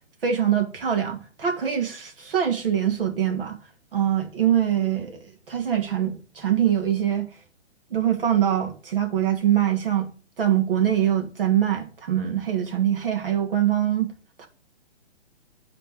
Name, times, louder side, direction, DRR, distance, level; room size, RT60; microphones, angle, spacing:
voice 1, 0.2-3.6 3.9-7.2 7.9-10.1 10.4-14.1 14.4-14.5, right 10 dB, 55° right, 2.5 m, -23 dB
9.8 x 4.4 x 6.8 m
hypercardioid pair, 175°, 33 cm